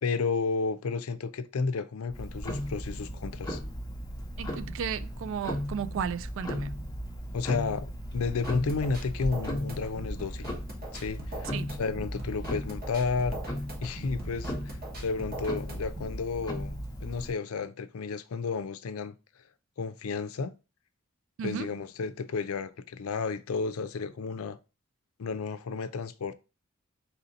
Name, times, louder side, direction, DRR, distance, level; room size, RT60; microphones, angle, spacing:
voice 1, 0.0-3.6 7.3-10.5 10.9-11.5 11.8-13.4 13.8-19.1 19.8-20.5 21.4-24.6 25.2-26.3, left 4 dB, 90° left, 0.4 m, -32 dB
Tick-tock, 2.1-17.3, equal, 20° left, 0.8 m, -37 dB
voice 2, 4.4-6.8 11.5-11.7 21.4-21.7, right 7 dB, 65° right, 0.3 m, -34 dB
sound 1, 8.2-16.2, equal, 45° right, 1.3 m, -42 dB
4.2 x 2.8 x 3.9 m
head